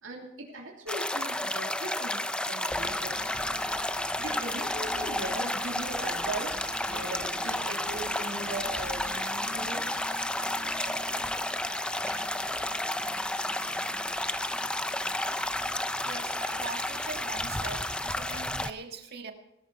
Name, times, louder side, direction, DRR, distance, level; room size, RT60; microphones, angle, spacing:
voice 1, 0.0-2.2 2.5-3.2 4.2-6.6 6.9-9.9, right 2 dB, 90° right, 3.1 m, -39 dB
sound 1, 0.9-18.7, left 1 dB, 5° left, 0.5 m, -32 dB
Singing / Bird, 2.7-17.9, right 1 dB, 20° right, 3.9 m, -46 dB
voice 2, 16.0-19.3, right 4 dB, 55° right, 1.8 m, -41 dB
19.0 x 12.0 x 4.2 m
head